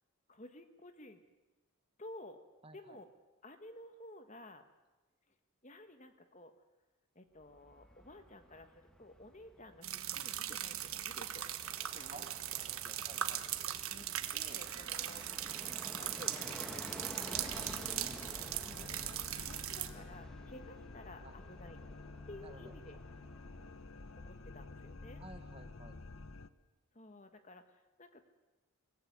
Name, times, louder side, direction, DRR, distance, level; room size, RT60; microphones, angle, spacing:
voice 1, 0.3-1.2 2.0-2.4 2.7-3.1 3.4-4.7 5.6-6.5 7.1-11.5 11.9-12.3 13.9-18.1 18.7-21.8 22.3-23.0 24.1-25.2 26.9-28.3, left 1 dB, 30° left, 8 dB, 1.4 m, -53 dB
voice 2, 2.6-3.0 12.1-12.3 12.5-13.4 21.2-21.3 22.4-22.7 25.2-26.0, right 3 dB, 25° right, 8 dB, 1.6 m, -54 dB
Fixed-wing aircraft airplane, 7.4-24.4 24.7-24.8, equal, 5° left, 1.6 m, -52 dB
sound 1, 9.8-19.9, right 11 dB, 70° right, 1.4 m, -39 dB
sound 2, 17.3-26.5, left 3 dB, 65° left, 1.0 m, -50 dB
22.5 x 18.0 x 9.6 m, 1.1 s
head